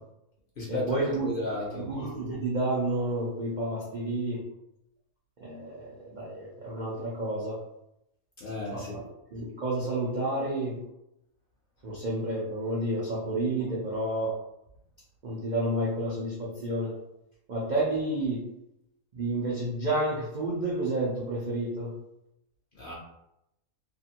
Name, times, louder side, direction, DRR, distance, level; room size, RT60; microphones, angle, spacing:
voice 1, 0.7-1.3 1.7-4.4 5.4-7.6 8.7-9.0 9.3-10.8 11.8-14.3 15.2-16.9 17.5-18.4 19.1-21.9, right 1 dB, 60° right, -6 dB, 0.5 m, -30 dB
voice 2, 1.2-1.8 8.4-9.0 22.8-22.9, left 2 dB, 50° left, -5 dB, 0.7 m, -33 dB
2.7 x 2.5 x 2.8 m, 0.85 s
omnidirectional pair, 1.5 m